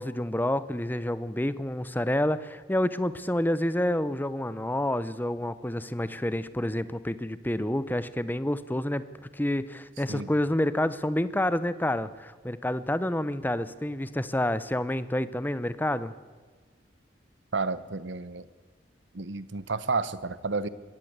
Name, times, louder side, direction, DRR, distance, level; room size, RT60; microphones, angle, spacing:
voice 1, 0.0-9.0 9.3-16.1, left 1 dB, 10° left, 15 dB, 0.7 m, -28 dB
voice 2, 17.5-18.5 19.1-20.7, right 4 dB, 80° right, 16 dB, 1.0 m, -31 dB
21.5 x 16.5 x 8.1 m, 1.5 s
head